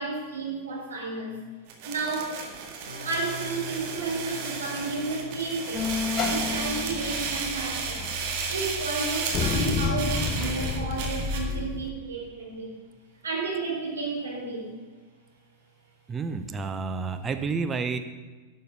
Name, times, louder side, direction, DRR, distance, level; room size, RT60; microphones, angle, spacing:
voice 1, 0.0-1.4 1.8-2.5 3.0-8.2 8.5-12.8 13.2-14.7, right 3 dB, 70° right, -3 dB, 4.0 m, -32 dB
sound 1, 1.7-11.5, right 5 dB, 45° right, 1.9 m, -33 dB
sound 2, 2.9-7.7, left 1 dB, 85° left, 1.6 m, -45 dB
sound 3, 5.7-11.9, left 5 dB, 30° left, 0.9 m, -31 dB
voice 2, 16.1-18.0, right 4 dB, 20° right, 8 dB, 0.7 m, -30 dB
11.5 x 6.6 x 6.3 m, 1.3 s
figure-of-eight pair, 90°, 0 cm